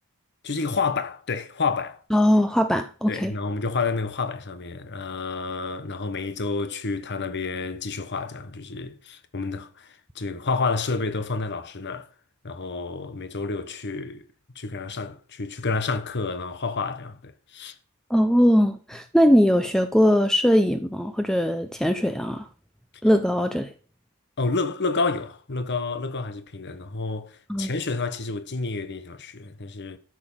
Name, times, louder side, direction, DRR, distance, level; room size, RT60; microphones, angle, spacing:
voice 1, 0.4-2.0 3.1-12.1 12.4-14.2 14.5-17.7 24.4-30.0, left 4 dB, 55° left, 1.3 m, -29 dB
voice 2, 2.1-3.3 18.1-22.5 23.0-23.7 27.5-27.7, equal, 5° left, 0.7 m, -20 dB
13.0 x 7.2 x 5.7 m
head